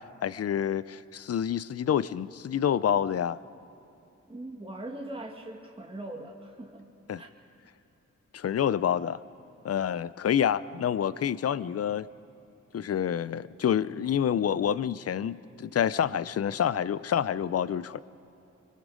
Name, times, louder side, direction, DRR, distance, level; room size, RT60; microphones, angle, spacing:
voice 1, 0.2-3.4 7.1-7.2 8.3-9.2 9.6-12.1 12.7-18.0, left 9 dB, 55° left, 17 dB, 0.6 m, -28 dB
voice 2, 4.3-6.9 7.2-7.3, right 1 dB, 20° right, 0 dB, 2.2 m, -41 dB
25.0 x 21.5 x 5.1 m, 3.0 s
cardioid pair, 70°, 29 cm